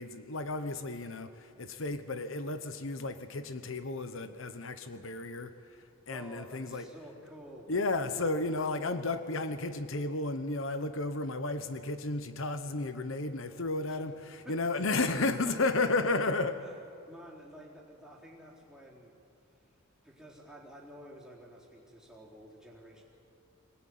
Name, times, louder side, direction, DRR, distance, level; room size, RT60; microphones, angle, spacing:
voice 1, 0.0-6.9 7.7-16.6, left 3 dB, 70° left, 9 dB, 1.1 m, -33 dB
voice 2, 6.1-7.7 13.9-14.0 14.4-15.2 15.4-15.5 17.1-19.2 20.0-23.0, equal, 5° right, -4 dB, 4.0 m, -51 dB
24.5 x 19.0 x 9.4 m, 2.5 s
head